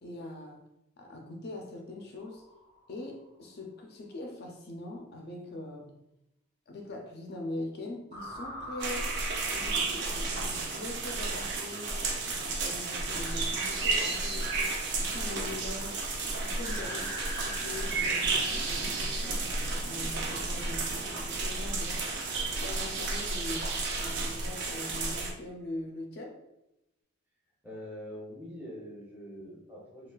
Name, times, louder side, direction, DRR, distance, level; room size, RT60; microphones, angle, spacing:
voice 1, 0.0-0.6 1.0-2.5 2.9-6.0 6.7-9.1 9.5-12.0 12.2-16.1 16.4-19.5 19.8-22.0 22.4-26.4, left 2 dB, 45° left, 2 dB, 0.4 m, -42 dB
sound 1, 2.2-3.0 8.1-11.8 16.6-18.8, equal, 35° right, 1.0 m, -44 dB
sound 2, 8.8-25.3, right 3 dB, 50° right, 0.5 m, -32 dB
sound 3, 15.0-23.8, right 1 dB, 70° right, 1.1 m, -52 dB
voice 2, 27.6-30.1, equal, 10° right, -5 dB, 0.6 m, -44 dB
3.7 x 2.3 x 2.3 m, 0.91 s
head